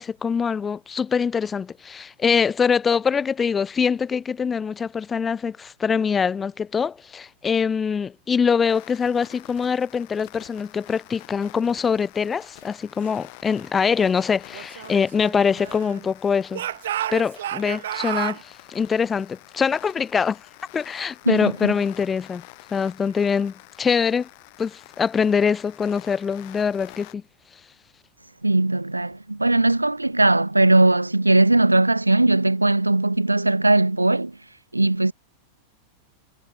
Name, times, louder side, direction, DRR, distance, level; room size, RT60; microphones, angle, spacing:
voice 1, 0.0-16.6 17.1-20.4 20.7-22.4 22.7-24.3 24.6-27.2, left 6 dB, 20° left, 1.1 m, -23 dB
sound 1, 8.7-27.1, left 29 dB, 45° left, 3.5 m, -47 dB
Speech / Shout, 14.5-16.1 16.5-18.4, right 12 dB, 60° right, 4.9 m, -31 dB
voice 2, 21.3-21.7 28.4-34.3 34.7-35.1, right 2 dB, 85° right, 1.2 m, -19 dB
figure-of-eight pair, 90°, 0 cm